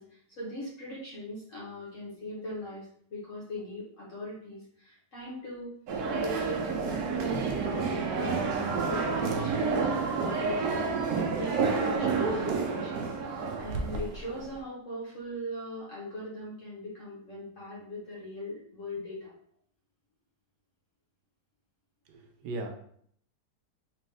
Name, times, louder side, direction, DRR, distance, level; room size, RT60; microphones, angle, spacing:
voice 1, 0.0-5.7 6.1-19.3, left 1 dB, 50° left, -6 dB, 1.4 m, -40 dB
sound 1, 5.9-14.5, right 4 dB, 70° right, 1.1 m, -29 dB
voice 2, 22.1-22.7, right 2 dB, 85° right, 3 dB, 1.3 m, -37 dB
3.4 x 3.3 x 3.3 m, 0.64 s
omnidirectional pair, 1.8 m